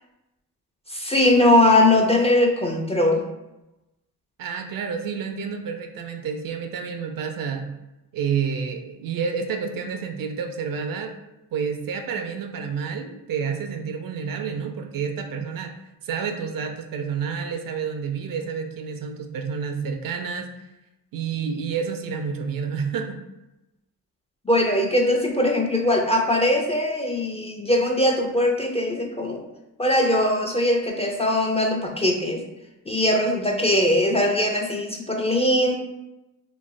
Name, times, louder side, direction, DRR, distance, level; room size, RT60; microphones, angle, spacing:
voice 1, 0.9-3.2 24.5-29.4 29.8-32.4 32.9-35.8, left 1 dB, 15° left, 0 dB, 0.4 m, -20 dB
voice 2, 4.4-7.7 8.1-11.1 11.5-15.7 16.0-20.5 21.1-23.2, right 6 dB, 60° right, 5 dB, 0.5 m, -29 dB
3.1 x 2.0 x 2.5 m, 0.97 s
supercardioid pair, 50°, 39 cm